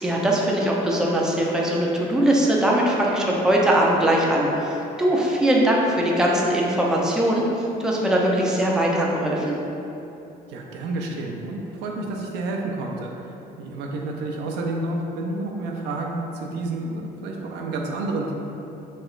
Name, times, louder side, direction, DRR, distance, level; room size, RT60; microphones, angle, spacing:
voice 1, 0.0-9.6, right 1 dB, 5° right, -3 dB, 0.4 m, -21 dB
voice 2, 10.5-13.1 13.6-18.3, right 2 dB, 80° right, 0 dB, 0.4 m, -29 dB
3.1 x 2.8 x 2.3 m, 2.8 s
cardioid pair, 110°, 17 cm